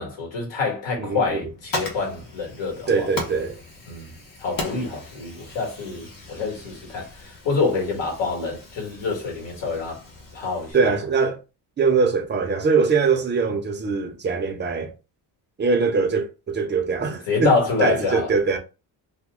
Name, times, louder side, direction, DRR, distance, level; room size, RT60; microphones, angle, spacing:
voice 1, 0.0-3.1 3.9-4.1 4.4-10.0 10.3-10.9 17.3-18.3, left 4 dB, 75° left, 1.8 m, -26 dB
voice 2, 1.0-1.5 2.9-3.6 10.7-11.4 11.8-14.9 15.6-18.6, right 4 dB, 25° right, 0.6 m, -22 dB
Fire, 1.3-10.7, left 2 dB, 45° left, 1.3 m, -37 dB
3.1 x 2.2 x 3.6 m
cardioid pair, 160°, 44 cm